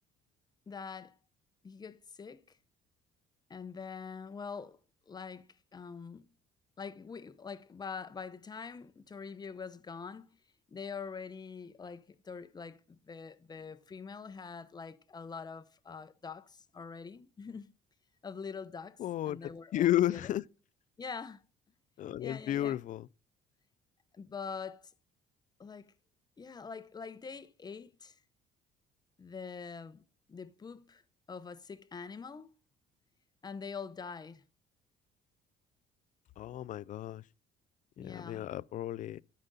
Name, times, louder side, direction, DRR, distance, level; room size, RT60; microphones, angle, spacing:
voice 1, 0.7-1.2 1.6-2.6 3.5-4.8 5.1-6.2 6.8-10.4 10.7-17.7 18.2-19.0 19.2-20.3 21.0-21.4 22.2-22.8 24.1-24.9 25.6-25.9 26.4-28.2 29.2-30.0 30.3-31.0 31.3-32.5 33.4-34.4 38.0-38.5, left 5 dB, 25° left, 0.8 m, -44 dB
voice 2, 19.0-19.4 19.7-20.4 22.0-23.1 36.4-37.2 38.0-39.2, left 13 dB, 50° left, 0.4 m, -32 dB
13.0 x 5.3 x 4.0 m
cardioid pair, 110°, 17 cm